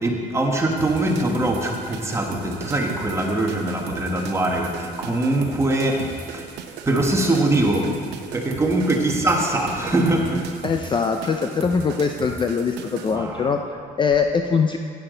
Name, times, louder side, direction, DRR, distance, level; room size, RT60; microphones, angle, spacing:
voice 1, 0.0-6.5 6.9-10.4 13.1-13.5, right 1 dB, 15° right, 0 dB, 1.4 m, -22 dB
sound 1, 0.8-13.2, right 6 dB, 85° right, 0.8 m, -36 dB
voice 2, 10.6-14.8, left 5 dB, 30° left, 5 dB, 0.5 m, -22 dB
10.0 x 9.2 x 3.9 m, 2.1 s
cardioid pair, 110°, 17 cm